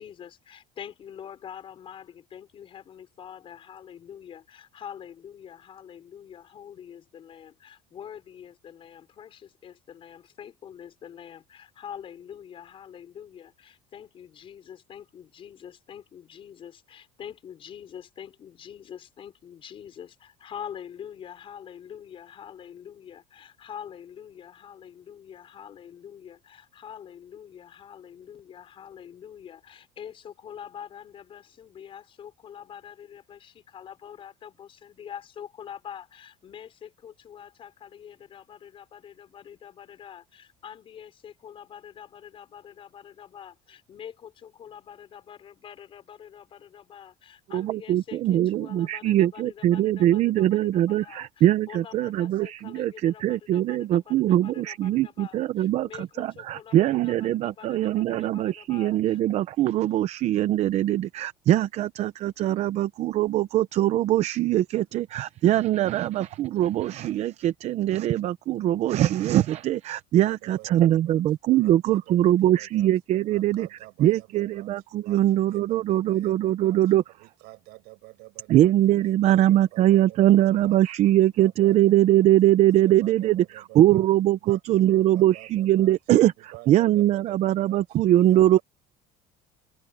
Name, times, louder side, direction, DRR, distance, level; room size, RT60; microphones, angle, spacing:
voice 1, 0.0-59.2, left 9 dB, 30° left, 5.3 m, -45 dB
voice 2, 47.5-73.7 74.0-77.0 78.5-83.4 83.8-86.3 86.7-88.6, right 13 dB, 40° right, 0.6 m, -22 dB
voice 3, 70.4-71.2 71.5-72.9 73.3-74.7 75.0-78.7 79.0-80.8 81.1-82.3 82.7-84.1 84.4-86.0 86.4-88.6, right 23 dB, 70° right, 8.0 m, -48 dB
cardioid pair, 175°, 18 cm